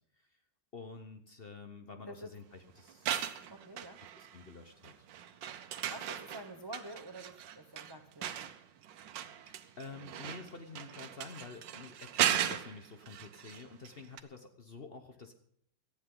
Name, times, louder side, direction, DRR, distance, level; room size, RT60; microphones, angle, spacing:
voice 1, 0.7-3.3 4.2-4.9 9.5-15.3, left 4 dB, 40° left, 6 dB, 1.0 m, -49 dB
sound 1, 2.9-4.5 4.8-13.9 14.2-14.3, right 10 dB, 90° right, 1.5 m, -37 dB
voice 2, 3.5-4.0 5.9-8.5, right 1 dB, 20° right, 7 dB, 0.6 m, -48 dB
18.0 x 13.5 x 3.9 m, 0.67 s
omnidirectional pair, 1.9 m